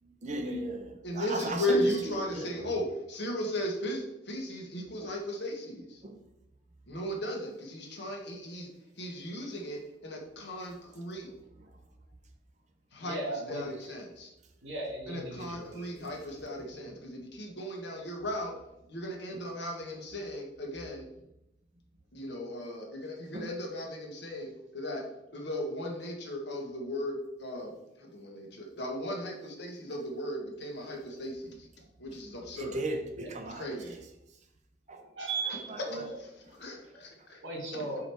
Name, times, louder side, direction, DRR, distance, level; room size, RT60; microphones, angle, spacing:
voice 1, 0.0-2.7 5.0-5.1 6.0-6.2 11.6-11.7 23.3-23.5 32.6-34.0 34.9-35.1 35.7-36.1, right 1 dB, 40° right, 0.9 m, -37 dB
voice 2, 1.0-6.0 6.9-8.7 9.0-11.3 12.9-14.3 15.1-18.5 18.9-21.1 22.1-25.0 25.3-27.7 28.0-31.7 32.0-32.8 33.4-34.0 35.9-37.4, equal, 65° left, 1.4 m, -36 dB
voice 3, 13.0-13.9 14.6-16.1 33.1-33.3 33.8-33.9 35.2-35.7 37.4-38.1, right 3 dB, 85° right, 2.1 m, -37 dB
5.1 x 4.9 x 4.7 m
head